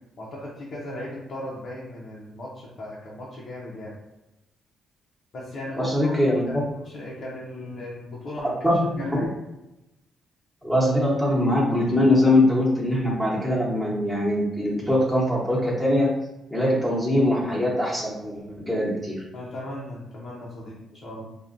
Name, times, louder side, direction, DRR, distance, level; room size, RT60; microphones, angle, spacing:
voice 1, 0.2-3.9 5.3-6.1 6.5-9.3 19.3-21.3, left 1 dB, 55° left, -6 dB, 0.8 m, -37 dB
voice 2, 5.8-6.4 8.6-9.1 10.6-16.1 16.5-19.2, left 1 dB, ahead, -7 dB, 1.1 m, -22 dB
4.4 x 2.4 x 2.5 m, 0.94 s
cardioid pair, 90°, 0 cm